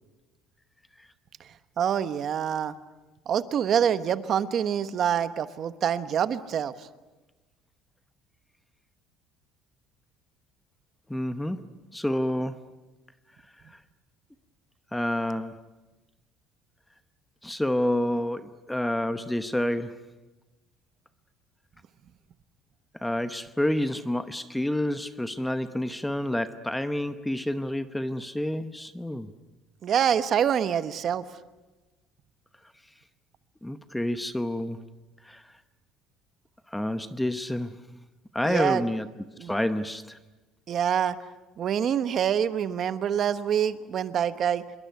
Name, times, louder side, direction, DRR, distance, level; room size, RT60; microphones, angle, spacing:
voice 1, 1.8-2.7 3.3-6.9 29.8-31.2 38.4-38.8 39.4-39.5 40.7-41.1 41.6-44.6, right 8 dB, 40° right, 12 dB, 1.1 m, -26 dB
voice 2, 11.1-11.6 11.9-12.6 14.9-15.6 17.4-20.0 23.0-29.3 33.6-34.8 35.3-35.4 36.7-37.7 38.3-39.1 39.4-40.2, left 1 dB, 5° left, 11 dB, 0.9 m, -28 dB
26.5 x 22.5 x 9.4 m, 1.1 s
cardioid pair, 145°, 0 cm